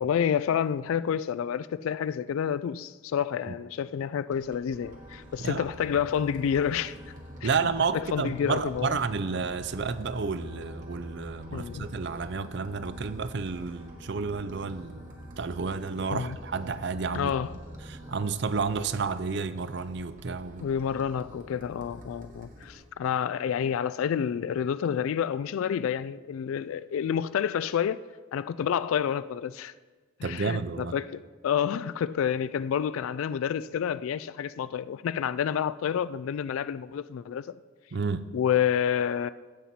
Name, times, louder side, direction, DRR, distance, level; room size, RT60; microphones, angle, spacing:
voice 1, 0.0-7.0 7.4-7.5 7.9-9.0 11.5-11.9 16.1-16.4 17.1-17.5 20.6-28.0 28.3-29.7 30.2-37.6 38.3-39.3, left 8 dB, 80° left, 0.3 m, -29 dB
sound 1, 4.3-22.8, equal, 40° right, 1.2 m, -50 dB
sound 2, 4.8-18.3, equal, 20° right, 1.1 m, -46 dB
voice 2, 7.4-15.0 15.4-17.3 17.9-20.7 30.2-30.9 37.9-38.2, right 5 dB, 55° right, 0.5 m, -31 dB
15.0 x 7.5 x 4.2 m
head